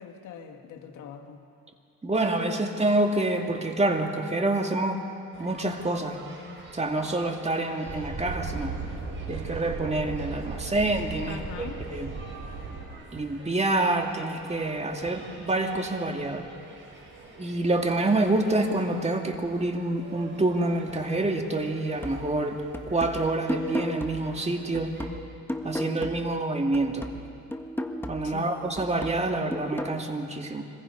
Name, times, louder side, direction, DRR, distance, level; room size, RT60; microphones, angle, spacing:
voice 1, 0.0-1.4 11.3-11.8 28.2-28.8, left 7 dB, 85° left, 5 dB, 1.7 m, -42 dB
voice 2, 2.0-5.0 5.4-6.2 6.7-8.8 9.3-12.1 13.1-16.5 17.4-22.6 22.9-24.9 25.6-27.1 28.1-30.6, right 2 dB, 20° right, 3 dB, 2.1 m, -27 dB
sound 1, 5.3-25.1, right 2 dB, 40° right, 5.8 m, -49 dB
sound 2, 7.9-12.9, right 4 dB, 60° right, 4.5 m, -36 dB
sound 3, 22.0-26.5 26.7-30.0, equal, 5° left, 1.3 m, -35 dB
25.5 x 21.0 x 5.4 m, 2.5 s
cardioid pair, 90°, 30 cm